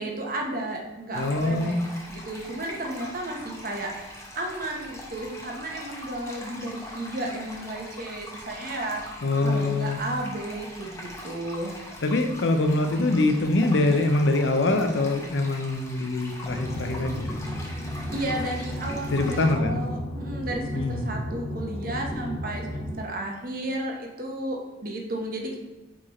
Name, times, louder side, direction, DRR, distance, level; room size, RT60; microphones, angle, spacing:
voice 1, 0.0-1.7 2.1-3.9 4.3-9.0 9.4-11.7 18.1-25.6, right 1 dB, 50° right, 1 dB, 1.0 m, -33 dB
voice 2, 1.1-1.8 9.2-10.0 12.0-17.3 19.1-19.8 20.7-21.1, left 2 dB, 70° left, 6 dB, 0.6 m, -24 dB
sound 1, 1.1-19.5, left 1 dB, 15° left, 0.8 m, -42 dB
sound 2, 16.5-22.9, left 1 dB, 30° left, 1.4 m, -34 dB
4.8 x 4.6 x 4.2 m, 1.1 s
head